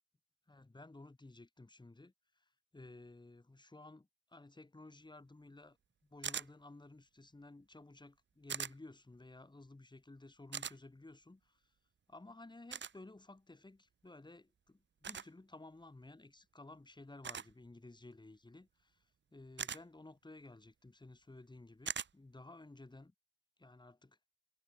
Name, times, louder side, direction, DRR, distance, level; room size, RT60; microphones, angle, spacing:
voice 1, 0.5-2.4 2.7-5.8 6.0-11.7 12.1-19.0 19.3-23.1 23.6-24.2, left 2 dB, 15° left, 4.3 m, -55 dB
sound 1, 6.2-6.5 8.5-8.7 10.5-10.8 12.7-12.9 15.0-15.3 17.2-17.5 19.6-19.8 21.9-22.1, right 7 dB, 40° right, 1.1 m, -40 dB
cardioid pair, 90°, 30 cm